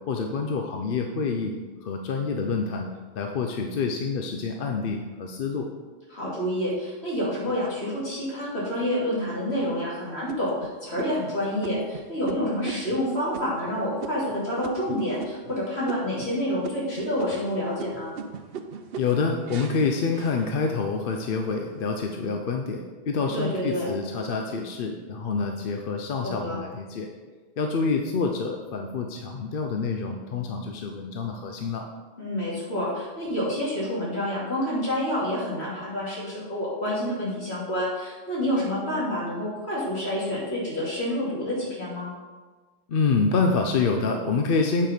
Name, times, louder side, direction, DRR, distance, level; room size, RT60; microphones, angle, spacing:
voice 1, 0.1-2.9 3.2-5.7 19.0-27.1 27.6-31.8 42.9-44.9, left 4 dB, 60° left, 3 dB, 0.8 m, -27 dB
voice 2, 6.1-18.1 23.3-23.9 26.2-26.6 32.2-42.1, equal, 75° left, -7 dB, 3.0 m, -28 dB
sound 1, 7.4-8.3 8.9-9.0 9.5-9.8 10.3-15.6 15.9-16.4 16.6-21.0 21.4-22.0, right 5 dB, 70° right, 0.8 m, -40 dB
8.7 x 4.8 x 5.2 m, 1.3 s
omnidirectional pair, 1.1 m